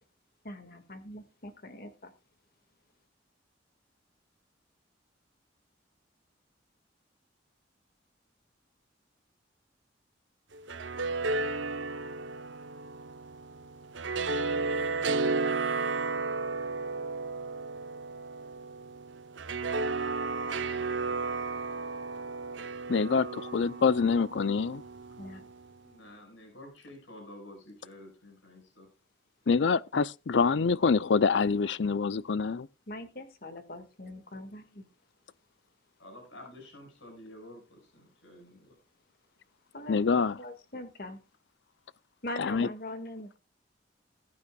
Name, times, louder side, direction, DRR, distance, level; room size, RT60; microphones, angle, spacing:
voice 1, 0.4-2.1 25.2-25.5 32.9-34.9 39.7-40.0 40.4-41.2 42.2-43.4, left 1 dB, 50° left, 1.9 m, -42 dB
sound 1, 10.5-25.7, right 3 dB, 80° right, 0.8 m, -33 dB
voice 2, 22.9-24.8 29.5-32.7 39.9-40.4 42.4-42.7, left 5 dB, 70° left, 0.5 m, -26 dB
voice 3, 25.8-28.9 36.0-38.7, left 1 dB, 90° left, 5.9 m, -50 dB
20.5 x 9.4 x 2.3 m
head